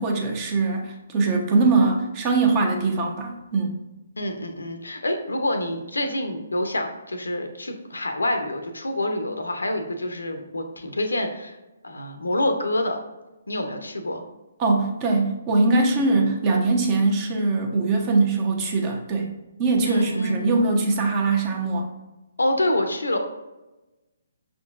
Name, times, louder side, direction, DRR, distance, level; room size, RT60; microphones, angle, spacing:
voice 1, 0.0-3.7 14.6-19.3 19.6-21.9, right 3 dB, 30° right, 1 dB, 0.9 m, -22 dB
voice 2, 4.2-11.5 11.8-13.0 13.5-14.2 19.8-20.4 22.4-23.2, left 1 dB, 85° left, 5 dB, 0.7 m, -27 dB
5.5 x 3.8 x 2.5 m, 1.0 s
figure-of-eight pair, 135°, 0 cm